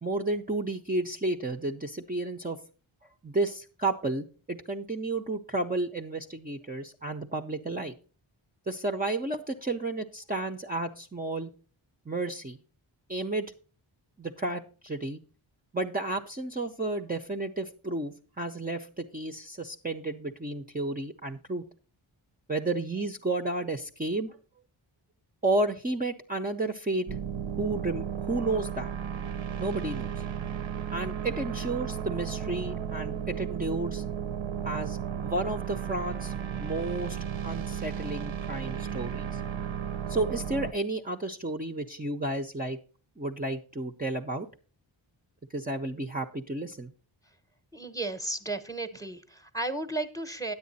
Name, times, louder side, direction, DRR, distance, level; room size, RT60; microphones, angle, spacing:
voice 1, 0.0-2.6 3.2-7.9 8.7-11.5 12.1-12.6 13.1-13.5 14.2-15.2 15.7-21.6 22.5-24.4 25.4-27.1 27.6-28.9 29.6-30.2 30.9-34.0 34.6-39.4 40.1-42.8 43.2-44.5 45.5-46.9, right 2 dB, 20° right, 3 dB, 0.6 m, -32 dB
sound 1, 27.1-40.7, right 8 dB, 75° right, 0.8 m, -34 dB
voice 2, 47.7-50.5, right 2 dB, 5° left, 10 dB, 0.9 m, -34 dB
9.5 x 8.1 x 4.0 m, 0.38 s
cardioid pair, 60°, 48 cm